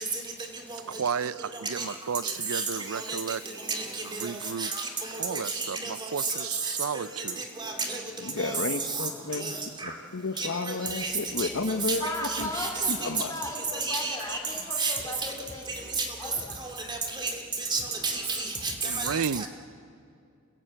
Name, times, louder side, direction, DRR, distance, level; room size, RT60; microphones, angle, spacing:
voice 1, 0.9-3.4 4.2-4.7 5.2-7.4 18.8-19.5, right 6 dB, 85° right, 17 dB, 0.6 m, -33 dB
voice 2, 4.1-4.9 5.3-5.4 5.8-5.9 7.6-8.0 8.4-8.6 9.4-9.5 9.8-9.9 10.4-11.1 11.4-11.5 12.2-12.7 13.7-14.2 14.8-14.9 16.9-17.3 17.7-19.1 19.4-19.5, right 4 dB, 20° right, 3 dB, 2.7 m, -31 dB
voice 3, 8.2-9.6 9.8-12.1 12.4-12.5 12.9-13.3, left 3 dB, 65° left, 9 dB, 1.1 m, -32 dB
voice 4, 12.0-15.9 16.2-16.4, left 2 dB, 15° left, 1 dB, 3.6 m, -37 dB
29.5 x 16.0 x 7.8 m, 2.4 s
head